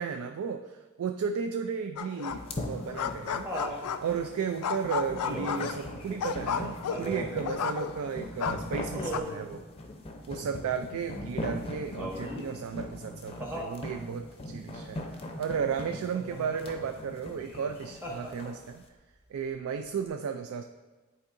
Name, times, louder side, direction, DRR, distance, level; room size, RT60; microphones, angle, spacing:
voice 1, 0.0-3.5 4.0-9.6 10.3-18.8 19.3-20.6, right 6 dB, 70° right, 7 dB, 0.3 m, -34 dB
sound 1, 2.0-2.6 2.8-4.2 4.6-8.1 8.4-9.2, left 7 dB, 80° left, 0.4 m, -33 dB
sound 2, 2.3-18.6, left 1 dB, 25° left, 0.6 m, -40 dB
Laughter, 2.5-3.8 5.2-5.7 6.9-7.3 8.9-9.5 12.0-12.5 13.4-13.8 16.1-16.6 18.0-18.7 20.1-20.2, equal, 10° right, 0.9 m, -37 dB
9.9 x 4.5 x 2.6 m, 1.2 s
head